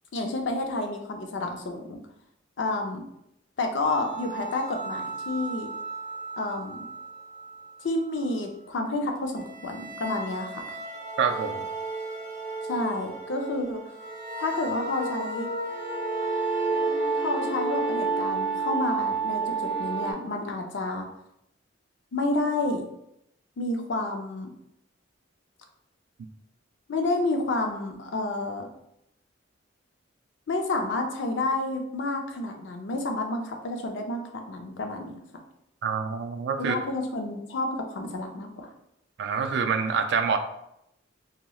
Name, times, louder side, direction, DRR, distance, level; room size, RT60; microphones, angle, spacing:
voice 1, 0.1-2.0 2.6-3.0 3.6-5.7 6.4-6.8 7.8-10.6 12.6-13.8 14.4-15.5 17.2-21.1 22.1-22.8 23.6-24.5 26.9-28.7 30.5-35.2 36.6-38.7, left 2 dB, 65° left, 4 dB, 0.5 m, -30 dB
sound 1, 3.8-7.5 9.4-20.1, right 3 dB, 30° left, 0.9 m, -31 dB
voice 2, 11.2-11.7 35.8-36.8 39.2-40.4, right 6 dB, 60° right, 7 dB, 0.3 m, -26 dB
2.9 x 2.8 x 2.3 m, 0.79 s
head